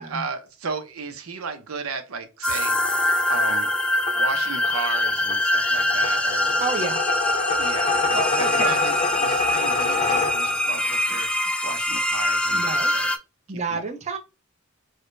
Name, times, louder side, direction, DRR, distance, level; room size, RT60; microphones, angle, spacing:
voice 1, 0.0-3.7 4.2-6.6 7.5-13.1 13.5-13.8, right 5 dB, 75° right, 0.7 m, -34 dB
sound 1, 2.4-13.2, left 1 dB, 5° left, 0.4 m, -24 dB
sound 2, 2.5-10.8, left 4 dB, 30° left, 0.7 m, -27 dB
voice 2, 6.6-7.0 8.1-8.7 12.5-12.9 13.5-14.2, right 4 dB, 35° right, 0.8 m, -29 dB
4.8 x 2.2 x 2.5 m
head